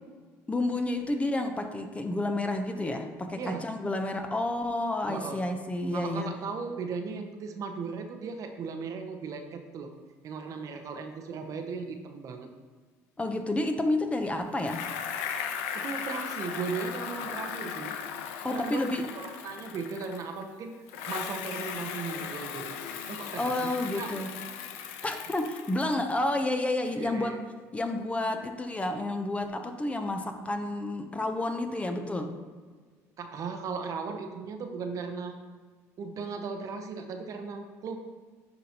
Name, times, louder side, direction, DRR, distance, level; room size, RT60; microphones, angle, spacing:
voice 1, 0.5-6.3 13.2-14.9 18.4-19.1 23.4-24.3 25.0-27.4 27.7-32.4, left 2 dB, 15° left, 6 dB, 0.7 m, -30 dB
voice 2, 5.1-5.4 5.9-9.9 10.2-12.5 15.7-17.9 18.5-18.8 19.1-20.7 21.1-22.7 23.1-24.1 25.0-25.1 26.9-27.4 33.2-35.4 36.0-38.0, right 5 dB, 50° right, 5 dB, 0.7 m, -37 dB
Bicycle, 14.6-20.5 20.9-26.1, left 7 dB, 85° left, 0.5 m, -37 dB
10.5 x 3.9 x 2.9 m, 1.5 s
supercardioid pair, 80°, 7 cm